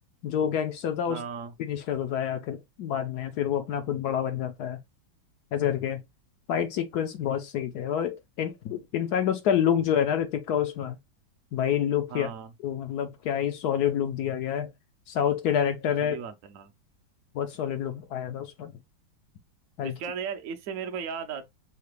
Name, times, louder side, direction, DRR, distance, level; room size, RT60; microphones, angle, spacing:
voice 1, 0.2-1.2 1.6-4.8 5.5-6.0 6.5-11.0 11.5-12.3 12.6-14.7 15.1-16.2 17.3-18.7 19.8-19.9, left 9 dB, 70° left, 1.0 m, -28 dB
voice 2, 1.0-1.5 3.8-4.1 12.1-12.5 16.0-16.7 19.8-21.5, right 7 dB, 60° right, 0.8 m, -36 dB
5.6 x 2.2 x 3.2 m
omnidirectional pair, 2.1 m